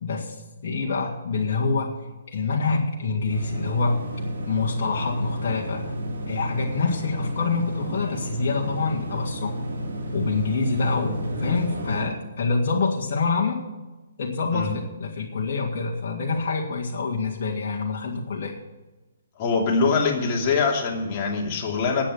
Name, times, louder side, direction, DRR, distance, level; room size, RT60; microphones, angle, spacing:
voice 1, 0.0-2.0 2.3-4.0 4.5-5.9 6.3-9.6 10.1-13.6 14.2-18.6, left 4 dB, 50° left, -3 dB, 1.9 m, -26 dB
sound 1, 3.3-12.1, equal, 60° right, 3.6 m, -31 dB
voice 2, 19.4-22.1, left 4 dB, 35° left, -1 dB, 2.9 m, -23 dB
9.8 x 8.9 x 8.2 m, 1.1 s
figure-of-eight pair, 130°, 0 cm